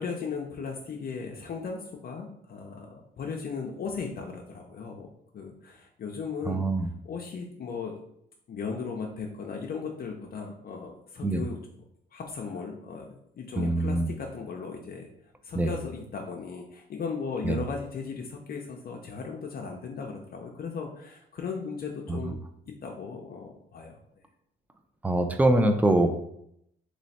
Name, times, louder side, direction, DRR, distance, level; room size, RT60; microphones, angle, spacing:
voice 1, 0.0-5.1 5.3-6.7 7.0-8.0 8.5-11.6 12.1-15.1 15.4-24.0, left 5 dB, 50° left, 1 dB, 0.6 m, -37 dB
voice 2, 6.5-6.9 11.2-11.4 13.6-14.1 15.6-15.7 17.4-17.6 22.1-22.3 25.0-26.2, right 2 dB, 10° right, 7 dB, 0.4 m, -24 dB
3.1 x 3.1 x 4.1 m, 0.75 s
cardioid pair, 90°, 20 cm